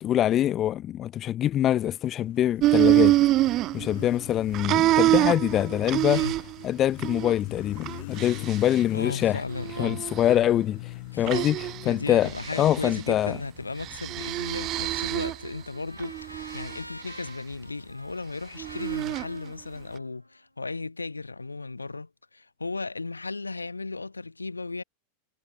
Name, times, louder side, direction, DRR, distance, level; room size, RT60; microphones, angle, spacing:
voice 1, 0.0-3.2 3.7-6.2 6.6-9.4 9.8-11.6 11.9-12.3 12.6-13.4, left 12 dB, 30° left, 0.8 m, -24 dB
Motorcycle, 2.0-14.6, left 21 dB, 50° left, 1.4 m, -42 dB
sound 1, 2.6-4.2 4.5-6.6 7.0-7.3 7.8-8.8 9.5-10.4 11.3-11.9 12.2-13.0 13.8-15.5 16.0-16.8 18.6-19.3, right 15 dB, 35° right, 0.5 m, -25 dB
voice 2, 8.9-10.0 11.1-11.5 11.8-24.8, left 3 dB, 80° left, 2.9 m, -35 dB
Trumpet, 14.2-20.4, equal, 90° right, 6.2 m, -47 dB
figure-of-eight pair, 90°, 0 cm